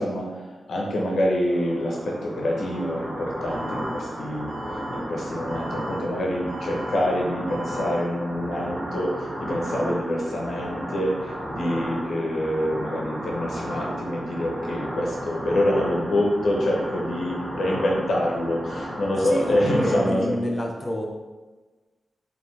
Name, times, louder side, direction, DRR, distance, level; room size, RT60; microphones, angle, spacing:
voice 1, 0.0-4.5 4.9-20.4, left 1 dB, 75° left, -2 dB, 0.9 m, -26 dB
sound 1, 1.5-20.1, right 1 dB, 85° right, 0.9 m, -34 dB
Alarm, 3.5-4.0 4.5-5.0 5.5-6.0 6.5-7.0 7.5-8.0, right 1 dB, 45° right, 0.9 m, -40 dB
voice 2, 19.2-21.0, equal, 15° left, 0 dB, 0.4 m, -28 dB
4.1 x 3.3 x 3.2 m, 1.2 s
wide cardioid pair, 145°, 0 cm